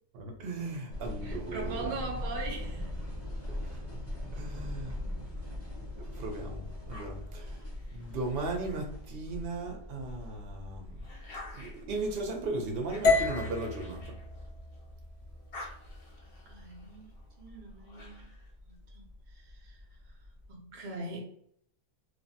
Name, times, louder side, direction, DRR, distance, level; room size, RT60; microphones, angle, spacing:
voice 1, 0.1-2.0 3.5-3.8 4.3-5.0 5.9-7.6 7.9-11.0 11.5-14.2, right 2 dB, 50° right, 0.8 m, -37 dB
sound 1, 0.9-20.5, left 1 dB, 15° left, 0.5 m, -42 dB
voice 2, 1.2-2.9 16.5-18.3 18.6-20.1 20.5-21.2, right 3 dB, 75° right, 0.4 m, -41 dB
sound 2, 6.9-9.6 10.1-14.9 15.2-18.5, left 1 dB, 50° left, 0.8 m, -50 dB
sound 3, 13.0-17.2, left 4 dB, 90° left, 1.3 m, -32 dB
3.1 x 2.1 x 2.7 m
omnidirectional pair, 1.6 m